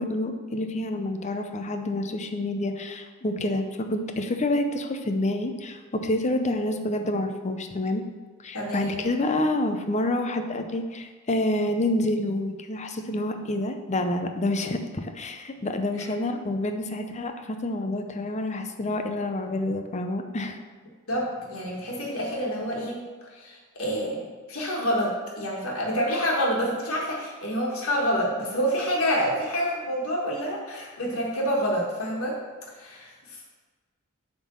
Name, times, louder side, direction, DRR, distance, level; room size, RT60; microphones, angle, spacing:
voice 1, 0.0-8.0 8.4-20.6, left 1 dB, 35° left, 6 dB, 0.6 m, -28 dB
voice 2, 8.5-9.0 21.1-23.1 23.3-32.4 32.7-33.1, equal, 80° left, -3 dB, 1.5 m, -27 dB
7.6 x 3.7 x 6.2 m, 1.4 s
head